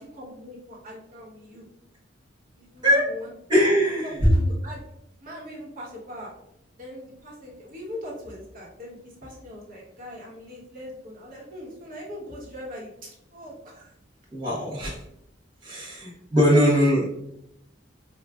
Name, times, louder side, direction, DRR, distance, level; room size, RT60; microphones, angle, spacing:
voice 1, 0.0-1.7 2.5-3.3 3.7-4.8 5.2-6.3 6.8-13.9 15.6-16.0 16.3-17.0, equal, 45° right, -4 dB, 1.1 m, -40 dB
voice 2, 3.5-4.3 14.3-15.0 15.6-17.0, equal, 25° right, -7 dB, 0.9 m, -21 dB
4.7 x 2.3 x 2.3 m, 0.77 s
head